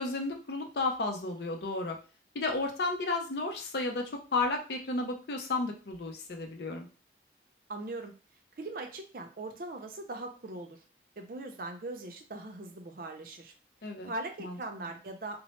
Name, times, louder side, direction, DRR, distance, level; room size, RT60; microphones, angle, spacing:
voice 1, 0.0-2.0 2.3-6.9 13.8-14.1 14.4-14.6, left 3 dB, 65° left, 3 dB, 0.5 m, -33 dB
voice 2, 7.7-8.1 8.6-10.8 11.2-13.5 14.1-15.4, right 2 dB, 55° right, 4 dB, 0.5 m, -40 dB
2.9 x 2.0 x 3.0 m, 0.34 s
head